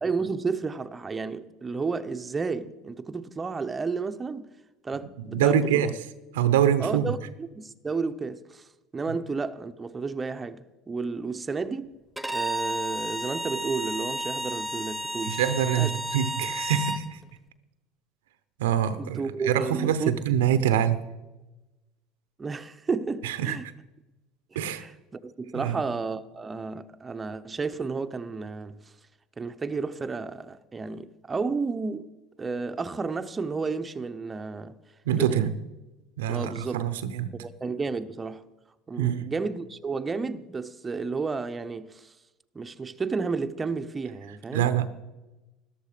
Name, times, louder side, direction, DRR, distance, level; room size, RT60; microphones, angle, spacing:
voice 1, 0.0-4.5 4.8-5.9 6.8-11.9 12.3-15.4 15.7-16.0 19.0-20.2 22.4-23.7 24.5-28.8 29.4-32.1 32.4-34.8 35.2-35.5 36.3-36.8 37.3-38.5 38.9-42.1 42.5-44.7, right 4 dB, 25° right, 0.7 m, -32 dB
voice 2, 5.3-5.9 6.3-7.1 9.1-9.2 15.3-17.2 18.6-21.0 23.2-23.6 24.5-24.9 25.5-25.8 35.1-35.5 36.2-37.3 39.0-39.3 44.5-44.9, right 9 dB, 85° right, 0.8 m, -25 dB
Bowed string instrument, 12.2-17.0, right 1 dB, 5° right, 1.2 m, -32 dB
13.5 x 12.0 x 5.1 m
hypercardioid pair, 85°, 0 cm